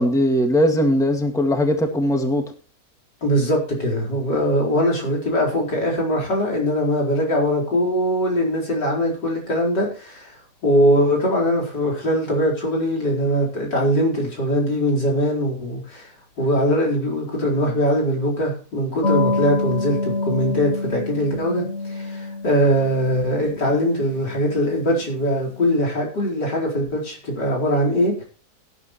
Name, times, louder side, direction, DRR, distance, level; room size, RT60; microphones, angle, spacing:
voice 1, 0.0-2.4, equal, ahead, 4 dB, 1.7 m, -19 dB
voice 2, 3.2-10.3 10.6-16.1 16.4-28.2, equal, 80° left, -1 dB, 5.1 m, -21 dB
sound 1, 19.0-25.2, left 3 dB, 45° left, 1.8 m, -27 dB
18.5 x 9.2 x 3.0 m, 0.37 s
omnidirectional pair, 1.8 m